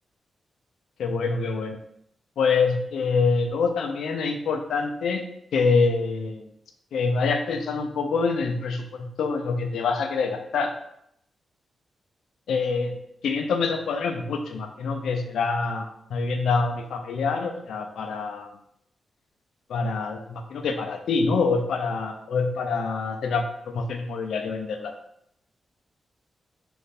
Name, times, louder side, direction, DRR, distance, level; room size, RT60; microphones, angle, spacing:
voice 1, 1.0-1.8 2.4-5.2 5.5-6.5 6.9-10.7 12.5-13.0 13.2-18.5 19.7-24.9, left 4 dB, 85° left, 5 dB, 0.4 m, -25 dB
3.3 x 2.5 x 4.1 m, 0.74 s
cardioid pair, 55°, 0 cm